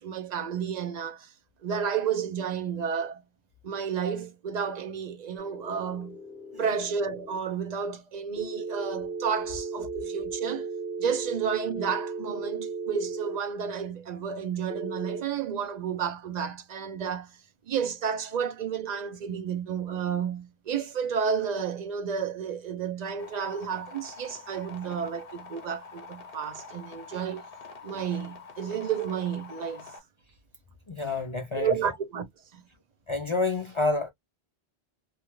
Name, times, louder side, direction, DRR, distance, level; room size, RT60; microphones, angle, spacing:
voice 1, 0.0-1.3 1.6-3.2 3.6-6.2 6.6-10.7 11.0-17.3 17.7-27.4 27.8-29.9 31.6-32.3 32.5-32.6, right 7 dB, 55° right, 0.5 m, -31 dB
sound 1, 5.4-7.4 8.4-13.4 14.7-15.2, right 4 dB, 5° right, 1.2 m, -36 dB
sound 2, 23.2-30.0, left 4 dB, 60° left, 1.1 m, -46 dB
voice 2, 30.9-31.7 33.1-34.1, left 3 dB, 45° left, 0.4 m, -28 dB
2.8 x 2.3 x 2.9 m
omnidirectional pair, 1.1 m